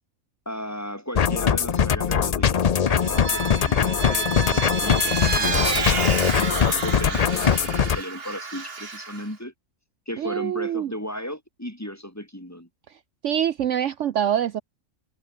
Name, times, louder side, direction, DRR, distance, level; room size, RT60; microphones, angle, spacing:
voice 1, 0.4-9.5 10.1-12.7, equal, 10° left, 4.7 m, -36 dB
sound 1, 1.1-8.0, left 7 dB, 50° left, 0.4 m, -21 dB
Vehicle, 2.9-9.2, right 4 dB, 45° right, 2.1 m, -29 dB
voice 2, 10.2-10.9 13.2-14.6, right 10 dB, 65° right, 1.0 m, -25 dB
omnidirectional pair, 1.4 m